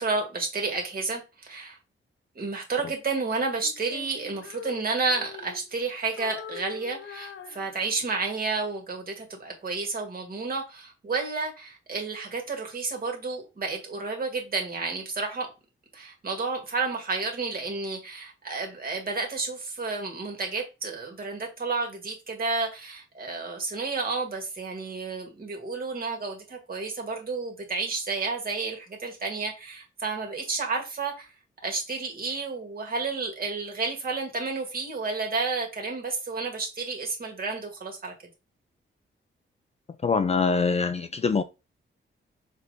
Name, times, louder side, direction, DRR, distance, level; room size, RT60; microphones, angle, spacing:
voice 1, 0.0-1.8 2.4-15.5 15.9-31.3 31.6-38.1, right 4 dB, 45° right, 2.0 m, -31 dB
Female singing, 3.6-5.9 6.2-8.2, left 9 dB, 75° left, 0.8 m, -44 dB
voice 2, 40.0-41.4, left 4 dB, 30° left, 0.4 m, -24 dB
6.6 x 4.1 x 3.5 m
wide cardioid pair, 170°, 21 cm